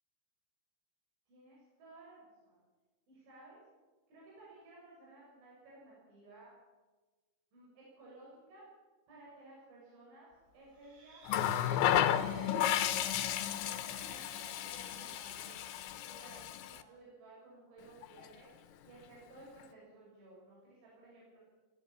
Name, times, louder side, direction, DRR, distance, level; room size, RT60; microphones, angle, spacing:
voice 1, 1.3-2.6 3.1-3.6 4.1-6.5 7.5-8.6 9.1-10.3 10.5-11.2 11.7-13.1 13.4-15.6 16.0-18.5 18.8-21.4, right 2 dB, 75° right, -5 dB, 9.4 m, -56 dB
sound 1, 10.6-16.6, right 2 dB, 60° right, 9.7 m, -57 dB
Water tap faucet, 11.3-16.8 18.0-18.2, left 11 dB, 80° left, 3.4 m, -33 dB
23.0 x 15.5 x 8.9 m, 1.3 s
omnidirectional pair, 5.4 m